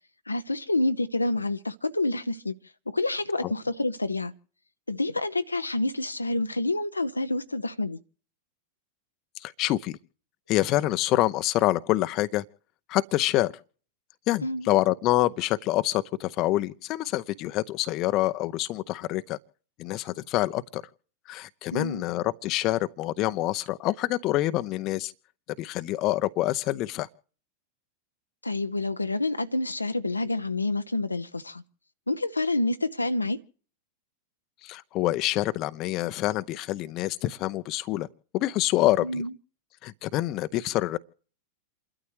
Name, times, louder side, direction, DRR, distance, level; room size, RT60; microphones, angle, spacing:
voice 1, 0.3-2.5 2.9-4.3 4.9-8.0 14.4-14.7 21.7-22.0 28.4-31.6 32.1-33.4 39.0-39.3, left 2 dB, 80° left, 0.7 m, -28 dB
voice 2, 9.4-10.0 10.5-12.4 12.9-13.5 14.3-19.4 19.8-20.8 21.3-25.1 25.6-27.1 34.6-38.1 38.3-39.2 39.8-41.0, left 16 dB, 40° left, 0.7 m, -26 dB
29.0 x 12.5 x 3.2 m
figure-of-eight pair, 90°, 0 cm